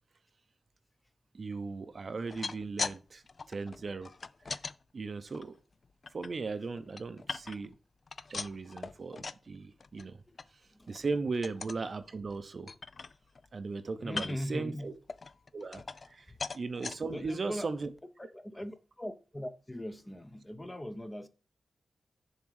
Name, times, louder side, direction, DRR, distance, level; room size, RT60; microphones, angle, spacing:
voice 1, 1.3-3.2 3.5-4.1 4.9-5.5 6.1-7.7 8.3-10.2 10.9-12.7 13.5-14.9 15.5-16.3 16.5-17.9, right 4 dB, 45° right, 0.6 m, -37 dB
sound 1, 2.1-3.0 3.3-4.7 5.3-6.3 6.7-7.8 8.1-9.5 9.8-10.1 10.4-10.5 10.9-11.1 11.4-11.8 12.3-12.4 12.7-13.5 14.1-14.5 15.1-16.1 16.4-17.0 17.6-17.7 18.0-18.1, left 4 dB, 45° left, 0.3 m, -40 dB
voice 2, 14.0-14.9 16.3-16.4 17.1-17.7 18.2-21.3, left 1 dB, 15° left, 0.7 m, -40 dB
7.0 x 3.7 x 6.4 m
wide cardioid pair, 125°, 0 cm